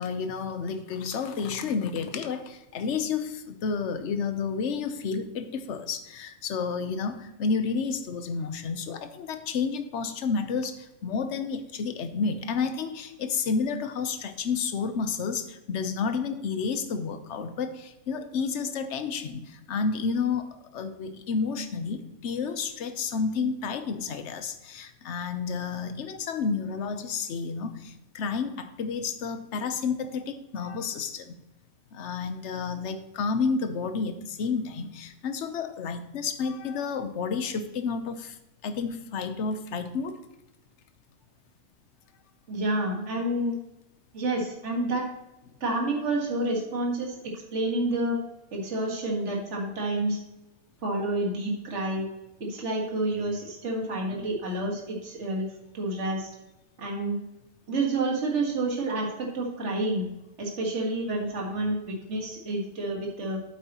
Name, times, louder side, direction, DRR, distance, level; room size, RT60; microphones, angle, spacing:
voice 1, 0.0-31.3 31.9-38.4 38.6-40.2, left 5 dB, 60° left, 9 dB, 1.1 m, -30 dB
voice 2, 42.5-43.5 44.1-45.1 45.6-48.2 48.5-50.2 50.8-52.1 52.4-55.5 55.7-56.3 56.8-57.2 57.7-60.1 60.4-63.4, right 2 dB, 55° right, -1 dB, 2.0 m, -29 dB
8.9 x 8.3 x 2.9 m, 0.95 s
omnidirectional pair, 1.4 m